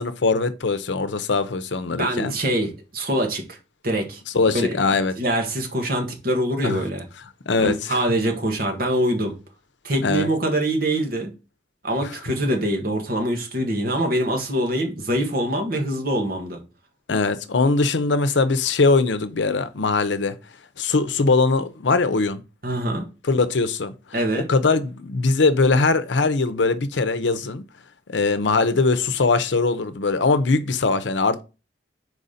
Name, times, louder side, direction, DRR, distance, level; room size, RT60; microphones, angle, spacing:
voice 1, 0.0-2.3 4.3-5.1 6.6-6.8 7.5-8.0 10.0-10.3 12.0-12.1 17.1-20.4 20.8-22.4 23.2-23.9 24.3-27.6 28.1-31.4, left 3 dB, 80° left, 0.7 m, -21 dB
voice 2, 2.0-3.6 3.8-4.2 4.5-4.8 5.2-7.0 7.6-9.3 9.8-11.3 11.8-16.6 22.6-23.0 24.1-24.5, right 1 dB, 55° right, 1.6 m, -24 dB
4.8 x 4.1 x 5.0 m
head